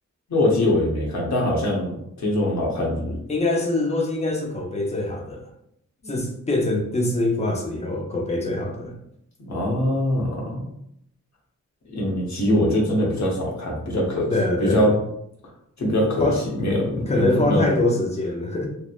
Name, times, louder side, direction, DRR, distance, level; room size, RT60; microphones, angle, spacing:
voice 1, 0.3-3.2 9.5-10.7 11.9-14.3 14.6-15.0 15.8-16.3 16.6-17.6, left 1 dB, 65° left, -3 dB, 0.9 m, -22 dB
voice 2, 3.3-5.5 6.1-9.0 14.3-14.9 16.2-16.4 17.1-18.7, left 2 dB, 20° left, 0 dB, 0.4 m, -24 dB
2.9 x 2.0 x 2.4 m, 0.76 s
wide cardioid pair, 150°, 30 cm